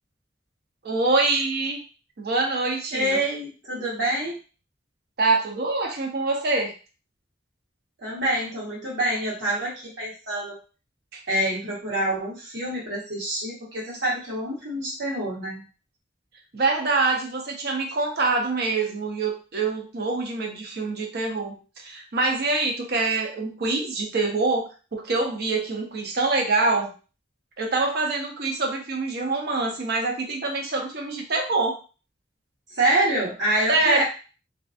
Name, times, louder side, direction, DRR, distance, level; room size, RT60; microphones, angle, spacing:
voice 1, 0.8-1.8 2.2-3.2 5.2-6.7 11.1-11.2 16.5-21.6 21.8-26.9 27.6-31.8 33.7-34.0, right 3 dB, 60° right, 1 dB, 0.6 m, -25 dB
voice 2, 2.9-4.4 8.0-10.6 11.3-15.6 32.7-34.0, right 1 dB, 80° right, -5 dB, 1.2 m, -26 dB
2.4 x 2.4 x 2.4 m, 0.34 s
head